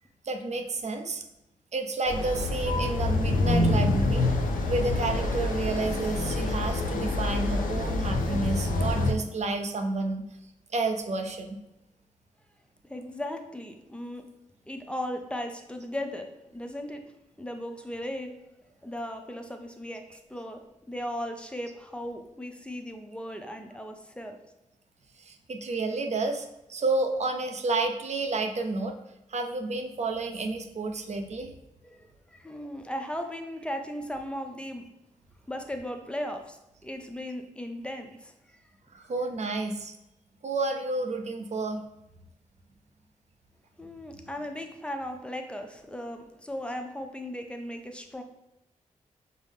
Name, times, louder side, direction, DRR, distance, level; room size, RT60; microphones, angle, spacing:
voice 1, 0.2-1.2 1.7-4.3 4.7-10.3 10.7-11.6 25.2-29.0 29.3-31.5 38.9-39.9 40.4-41.8, right 3 dB, 55° right, 4 dB, 0.5 m, -30 dB
sound 1, 2.1-9.1, left 2 dB, 85° left, 0.5 m, -26 dB
voice 2, 12.8-14.2 14.7-17.0 17.4-18.3 18.8-24.4 31.9-34.9 35.5-38.7 38.9-39.1 43.8-48.2, left 1 dB, 10° left, 5 dB, 0.6 m, -37 dB
5.4 x 2.0 x 3.4 m, 0.88 s
cardioid pair, 50°, 14 cm